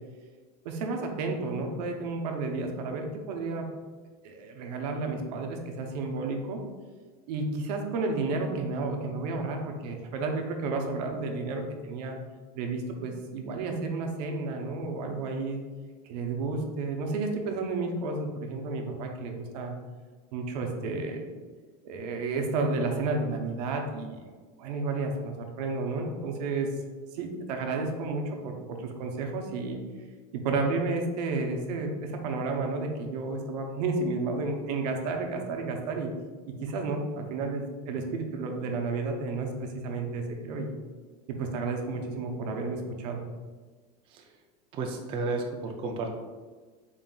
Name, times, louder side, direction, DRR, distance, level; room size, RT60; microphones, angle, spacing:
voice 1, 0.6-3.6 4.2-6.6 7.3-12.2 12.6-15.6 16.0-19.7 20.3-21.3 21.8-24.2 24.6-26.7 27.1-29.8 30.3-36.1 36.6-40.7 41.3-43.2, right 3 dB, 80° right, 3 dB, 0.7 m, -31 dB
voice 2, 44.1-44.4 44.7-46.1, right 3 dB, 25° right, 2 dB, 0.4 m, -33 dB
4.0 x 3.7 x 2.3 m, 1.4 s
supercardioid pair, 150°, 21 cm